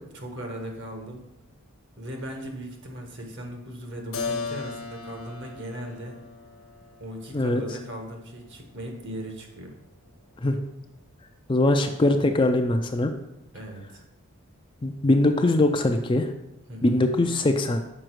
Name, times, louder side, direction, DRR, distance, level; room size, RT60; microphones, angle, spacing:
voice 1, 0.1-1.2 2.0-6.2 7.0-9.8 13.5-14.0 16.7-17.1, right 1 dB, 55° right, 3 dB, 1.2 m, -38 dB
Keyboard (musical), 4.1-9.7, left 4 dB, 80° left, 1.1 m, -38 dB
voice 2, 11.5-13.1 14.8-16.3 16.8-17.8, left 2 dB, 20° left, 6 dB, 0.4 m, -22 dB
6.3 x 5.1 x 4.6 m, 0.87 s
head